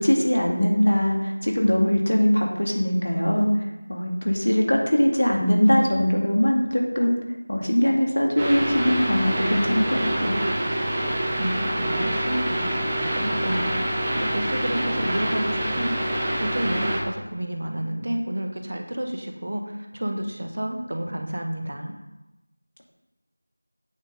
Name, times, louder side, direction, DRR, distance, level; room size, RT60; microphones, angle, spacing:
voice 1, 0.0-3.6 3.9-7.2 7.5-10.4, equal, 65° left, 0 dB, 2.2 m, -21 dB
sound 1, 8.4-17.0, right 1 dB, 15° right, 1.0 m, -26 dB
voice 2, 11.4-16.1 16.4-21.9, right 1 dB, 50° right, 4 dB, 1.2 m, -30 dB
8.7 x 5.7 x 5.4 m, 0.99 s
figure-of-eight pair, 175°, 0 cm